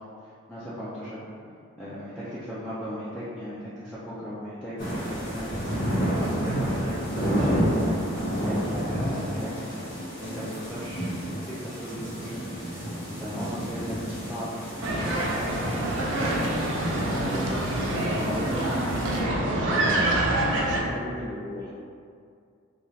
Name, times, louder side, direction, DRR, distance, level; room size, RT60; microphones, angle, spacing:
voice 1, 0.5-1.2 1.8-9.6 10.2-12.8 13.2-15.7 16.1-16.4 16.9-17.5 17.8-18.4, equal, 5° left, -12 dB, 0.3 m, -37 dB
sound 1, 4.8-19.2, equal, 65° left, 1.0 m, -31 dB
sound 2, 14.8-20.8, right 1 dB, 65° right, 0.4 m, -26 dB
voice 2, 17.7-20.1 20.5-21.7, equal, 20° right, -9 dB, 0.7 m, -37 dB
3.1 x 2.4 x 2.6 m, 2.3 s
head